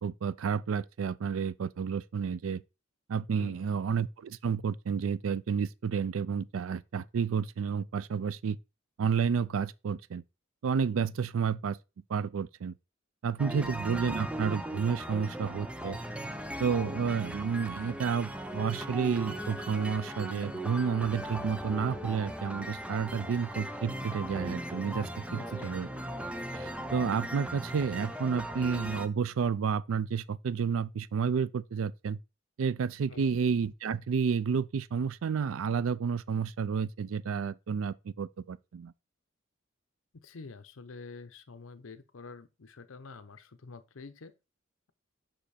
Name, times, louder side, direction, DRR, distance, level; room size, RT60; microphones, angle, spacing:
voice 1, 0.0-2.6 3.1-8.6 9.0-10.2 10.6-11.8 12.1-12.7 13.2-16.0 16.6-25.9 26.5-32.2 32.6-38.9, right 6 dB, 85° right, 0.4 m, -31 dB
voice 2, 3.4-3.8 13.5-13.8 25.3-25.7 33.1-33.4 40.1-44.3, left 4 dB, 80° left, 0.7 m, -47 dB
sound 1, 13.4-29.1, right 1 dB, 5° right, 0.5 m, -38 dB
5.6 x 5.1 x 4.2 m
head